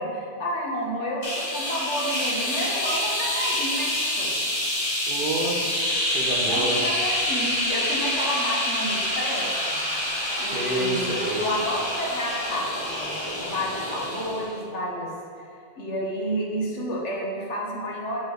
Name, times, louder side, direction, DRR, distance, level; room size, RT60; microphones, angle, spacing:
voice 1, 0.0-4.3 6.5-9.8 10.4-15.1 15.4-15.5 15.8-18.2, equal, 75° left, -3 dB, 1.5 m, -30 dB
sound 1, 1.2-14.6, left 1 dB, 25° left, 1.0 m, -27 dB
voice 2, 5.1-5.8 6.1-6.9 10.5-11.4, right 2 dB, 50° right, -2 dB, 1.1 m, -28 dB
6.2 x 4.0 x 6.4 m, 2.6 s
omnidirectional pair, 1.2 m